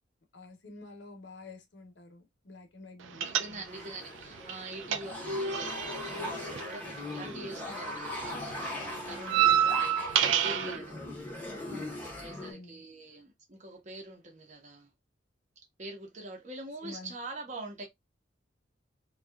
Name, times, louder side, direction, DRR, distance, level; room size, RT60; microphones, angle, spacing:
voice 1, 0.3-3.9 9.1-9.4 11.4-11.9 12.3-12.8 16.8-17.1, left 2 dB, 65° left, 0.8 m, -49 dB
voice 2, 3.1-11.1 11.5-14.9 15.8-17.9, right 2 dB, 40° right, 0.7 m, -45 dB
sound 1, 3.2-4.0 4.2-7.6 7.9-10.8, right 9 dB, 80° right, 0.3 m, -29 dB
sound 2, 3.6-12.5, left 1 dB, 10° left, 0.7 m, -40 dB
2.7 x 2.3 x 2.3 m
head